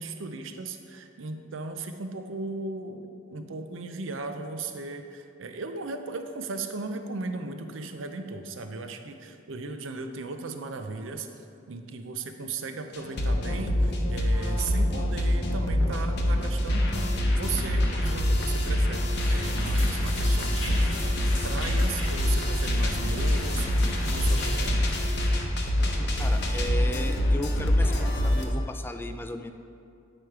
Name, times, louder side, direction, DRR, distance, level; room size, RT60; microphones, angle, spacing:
voice 1, 0.0-11.3 11.7-24.9, right 3 dB, 85° right, 7 dB, 0.6 m, -37 dB
sound 1, 12.9-28.4, left 1 dB, 60° left, 0.8 m, -25 dB
sound 2, 19.0-24.6, left 2 dB, 85° left, 1.6 m, -39 dB
voice 2, 26.2-29.5, left 1 dB, 10° left, 7 dB, 0.3 m, -36 dB
8.7 x 4.9 x 4.6 m, 2.5 s
head